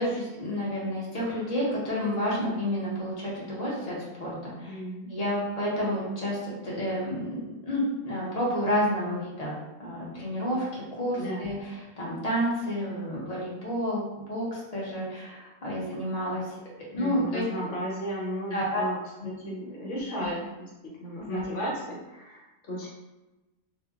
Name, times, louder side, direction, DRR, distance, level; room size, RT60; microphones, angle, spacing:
voice 1, 0.0-4.8 5.1-6.4 6.6-16.4 16.9-17.4 18.5-18.8 19.2-19.3 20.1-20.3 21.3-21.4, equal, 35° left, -6 dB, 0.7 m, -30 dB
voice 2, 4.6-5.1 11.2-11.5 16.9-19.0 19.2-20.7 21.0-22.9, equal, 65° left, -4 dB, 1.1 m, -34 dB
2.6 x 2.1 x 2.3 m, 1.1 s
omnidirectional pair, 1.4 m